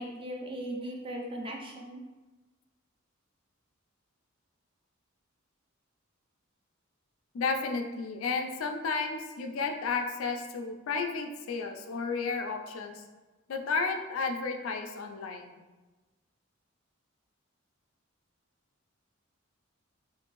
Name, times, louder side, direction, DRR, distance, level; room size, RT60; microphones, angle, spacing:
voice 1, 0.0-2.0, right 1 dB, 25° right, 0 dB, 0.4 m, -38 dB
voice 2, 7.3-13.0 13.5-15.5, left 4 dB, 75° left, 5 dB, 0.3 m, -32 dB
2.6 x 2.5 x 3.0 m, 1.2 s
head